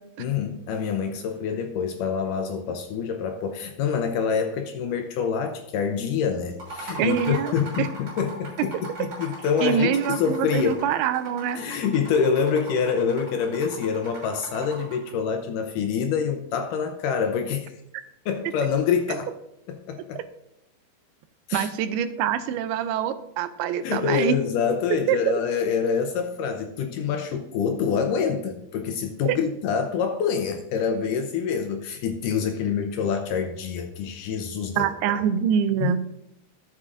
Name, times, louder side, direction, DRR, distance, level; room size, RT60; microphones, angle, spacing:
voice 1, 0.2-8.7 9.0-10.8 11.6-17.8 18.3-19.3 19.7-20.2 21.5-21.7 23.8-34.9 35.8-36.1, left 6 dB, 80° left, 5 dB, 1.9 m, -26 dB
sound 1, 6.5-15.1, right 2 dB, 40° right, 4.2 m, -39 dB
voice 2, 7.0-7.9 8.6-8.7 9.6-11.6 20.2-20.3 21.5-24.4 25.1-25.4 29.3-29.4 34.8-36.1, right 9 dB, 85° right, 12 dB, 2.5 m, -25 dB
13.0 x 7.4 x 2.6 m, 0.85 s
omnidirectional pair, 4.5 m